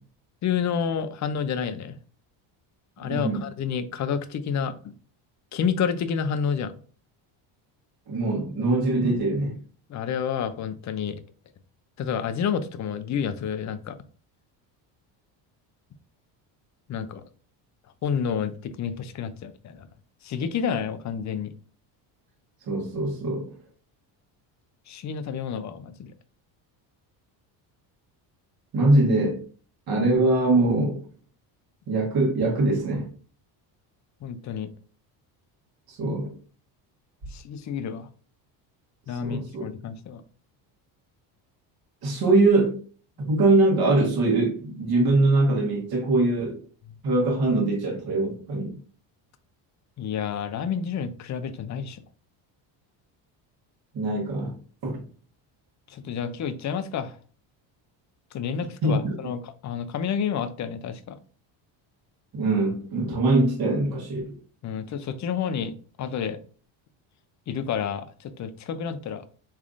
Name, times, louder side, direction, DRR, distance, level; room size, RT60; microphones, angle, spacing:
voice 1, 0.4-2.0 3.0-4.9 5.5-6.7 9.9-11.1 12.0-14.0 16.9-17.2 18.0-19.9 20.2-21.5 24.9-26.1 34.2-34.7 37.3-38.1 39.1-40.2 50.0-52.0 55.9-57.2 58.3-61.2 64.6-66.4 67.5-69.2, left 7 dB, 40° left, 0.5 m, -29 dB
voice 2, 3.0-3.4 8.1-9.6 22.7-23.5 28.7-29.4 29.9-31.0 31.9-33.1 35.9-36.4 39.2-39.7 42.0-42.7 43.2-46.6 47.0-48.7 53.9-54.5 54.8-55.0 58.8-59.0 62.3-64.3, right 2 dB, 50° right, 1.4 m, -22 dB
3.5 x 3.2 x 2.5 m
supercardioid pair, 90°, 48 cm